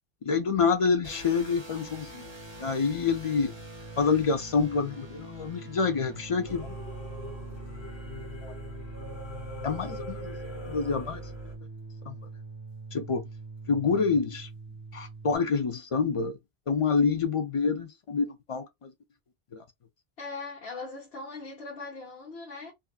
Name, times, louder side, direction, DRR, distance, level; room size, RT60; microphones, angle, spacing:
voice 1, 0.2-2.3 2.6-3.5 4.0-6.8 8.4-8.5 9.6-10.4 10.6-11.2 12.1-12.2 12.9-13.2 13.7-14.5 14.9-16.4 16.7-18.9 19.5-19.6, left 5 dB, 50° left, 0.4 m, -27 dB
sound 1, 1.0-15.4, right 3 dB, 30° right, 0.6 m, -43 dB
Singing / Musical instrument, 6.4-11.6, left 1 dB, 30° left, 0.8 m, -41 dB
voice 2, 20.2-22.7, left 3 dB, 90° left, 1.1 m, -40 dB
2.6 x 2.4 x 2.3 m
omnidirectional pair, 1.0 m